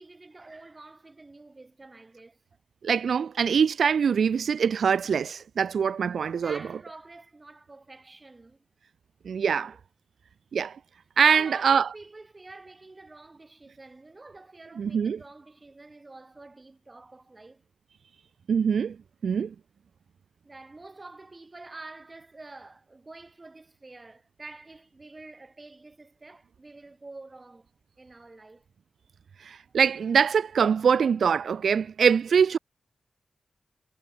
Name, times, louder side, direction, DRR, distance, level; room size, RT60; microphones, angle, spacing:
voice 1, 0.0-2.4 6.3-8.6 9.6-9.8 11.2-17.6 20.4-27.7 28.0-28.7, right 2 dB, 25° right, 5.5 m, -47 dB
voice 2, 2.8-6.6 9.3-9.7 10.5-10.8 11.2-11.9 14.8-15.2 18.5-19.0 19.2-19.5 29.4-32.6, right 6 dB, 80° right, 0.7 m, -23 dB
wide cardioid pair, 150°, 0 cm